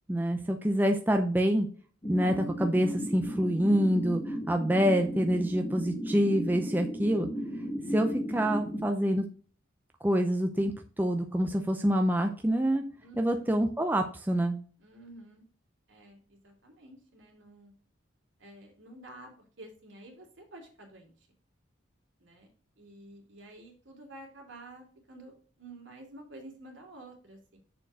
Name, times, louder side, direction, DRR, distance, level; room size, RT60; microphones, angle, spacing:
voice 1, 0.1-1.7 2.1-7.3 7.9-9.2 10.0-12.8 13.2-14.6, equal, 10° right, 4 dB, 0.5 m, -26 dB
sound 1, 2.0-8.9, equal, 20° left, 1.2 m, -35 dB
voice 2, 13.0-13.5 14.8-15.4 15.9-17.7 18.4-19.3 19.6-21.3 22.2-22.5 22.8-27.6, right 1 dB, 70° right, 1 dB, 2.7 m, -50 dB
6.6 x 4.4 x 6.1 m, 0.42 s
head